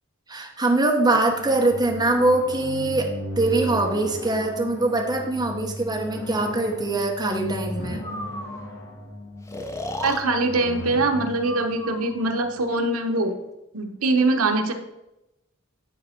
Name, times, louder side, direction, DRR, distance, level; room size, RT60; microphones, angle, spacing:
voice 1, 0.3-3.1 3.4-8.0, right 2 dB, 20° right, 1 dB, 1.1 m, -23 dB
sound 1, 1.1-12.7, left 1 dB, 55° left, 1.3 m, -36 dB
Breathing, 8.0-8.7 9.5-10.2 11.4-12.2, left 1 dB, 15° left, 0.6 m, -34 dB
voice 2, 10.0-13.3 13.7-14.7, right 2 dB, 80° right, 5 dB, 1.0 m, -23 dB
10.5 x 4.2 x 4.4 m, 0.93 s
head